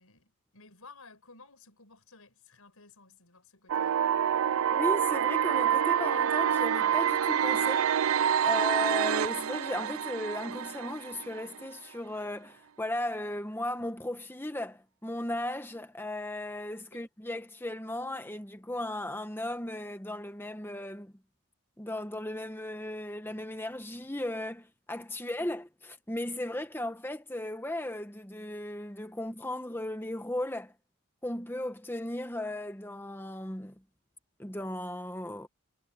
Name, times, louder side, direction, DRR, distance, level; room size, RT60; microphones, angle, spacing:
voice 1, 0.0-4.0 8.5-8.6 16.9-17.1, left 3 dB, 85° left, 5.3 m, -55 dB
sound 1, 3.7-11.7, right 9 dB, 70° right, 0.4 m, -27 dB
voice 2, 4.7-7.9 8.4-21.1 21.8-30.7 31.2-33.7 34.4-35.5, left 1 dB, 10° left, 1.1 m, -36 dB
head